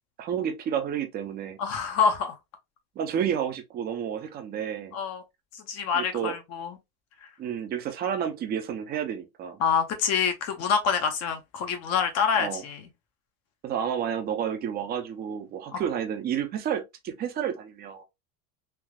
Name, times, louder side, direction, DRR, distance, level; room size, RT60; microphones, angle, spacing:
voice 1, 0.2-1.6 3.0-5.0 5.9-6.4 7.4-9.6 12.4-12.6 13.6-18.0, right 8 dB, 25° right, 0.4 m, -30 dB
voice 2, 1.6-2.4 4.9-5.2 5.5-6.8 9.6-12.8 15.7-15.8, left 6 dB, 40° left, 0.5 m, -26 dB
3.4 x 2.3 x 2.2 m
supercardioid pair, 140°, 43 cm